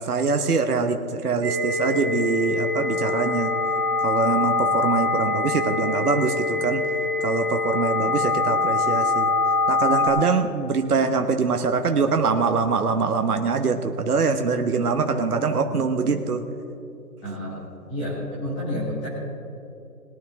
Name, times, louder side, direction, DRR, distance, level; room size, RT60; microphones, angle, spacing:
voice 1, 0.0-3.5 4.0-6.8 7.2-9.3 9.7-16.4, right 4 dB, 65° right, 6 dB, 1.2 m, -23 dB
sound 1, 1.4-10.1, left 3 dB, 20° right, 3.1 m, -24 dB
voice 2, 17.2-19.1, left 1 dB, 5° left, -7 dB, 1.1 m, -30 dB
21.0 x 10.0 x 3.5 m, 2.8 s
hypercardioid pair, 165°, 48 cm